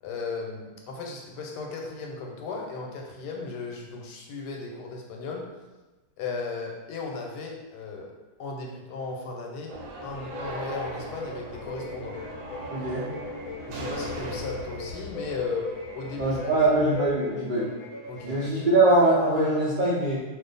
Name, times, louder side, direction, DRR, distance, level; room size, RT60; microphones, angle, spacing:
voice 1, 0.0-5.5 6.2-8.1 8.4-12.2 13.7-16.9 18.1-18.5, left 4 dB, 90° left, 0 dB, 1.2 m, -36 dB
sound 1, 9.7-17.1, right 1 dB, 75° right, 1.1 m, -40 dB
sound 2, 10.1-18.7, left 2 dB, 60° left, 0.6 m, -39 dB
voice 2, 12.7-13.0 16.2-17.7 18.2-20.2, right 2 dB, 60° right, -10 dB, 0.5 m, -22 dB
2.5 x 2.4 x 3.9 m, 1.2 s
omnidirectional pair, 1.8 m